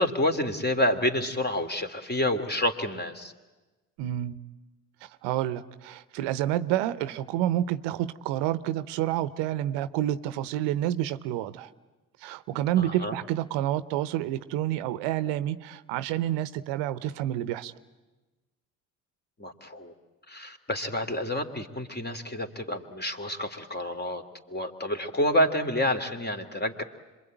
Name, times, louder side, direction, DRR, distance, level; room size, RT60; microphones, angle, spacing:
voice 1, 0.0-3.3 12.8-13.1 19.4-19.9 20.3-24.2 24.5-26.8, left 1 dB, 25° left, 6 dB, 2.7 m, -28 dB
voice 2, 4.0-4.4 5.0-11.7 12.2-17.7, right 12 dB, 75° right, 15 dB, 0.9 m, -29 dB
26.0 x 22.5 x 9.1 m, 1.2 s
hypercardioid pair, 55°, 43 cm